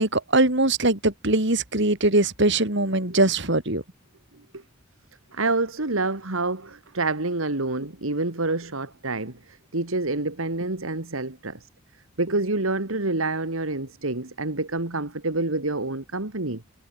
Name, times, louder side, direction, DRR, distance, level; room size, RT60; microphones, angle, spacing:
voice 1, 0.0-3.8, right 2 dB, 60° right, 3.8 m, -21 dB
voice 2, 5.3-11.6 12.2-16.6, right 2 dB, 90° right, 2.5 m, -27 dB
head